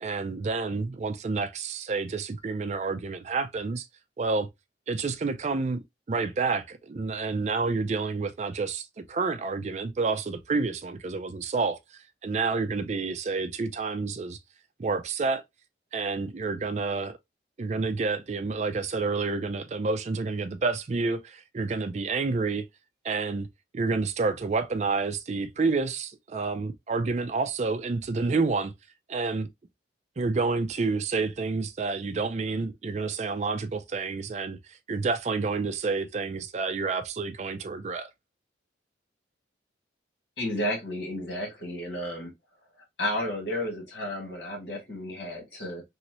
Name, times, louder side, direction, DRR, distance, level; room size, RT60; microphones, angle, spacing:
voice 1, 0.0-3.9 4.2-4.5 4.9-5.8 6.1-11.8 12.2-14.4 14.8-15.4 15.9-17.2 17.6-22.6 23.0-23.5 23.7-28.7 29.1-29.5 30.2-34.6 34.9-38.1, right 4 dB, 35° right, 0.4 m, -29 dB
voice 2, 40.4-42.3 43.0-45.8, left 1 dB, 70° left, 2.0 m, -32 dB
3.1 x 2.9 x 2.9 m
head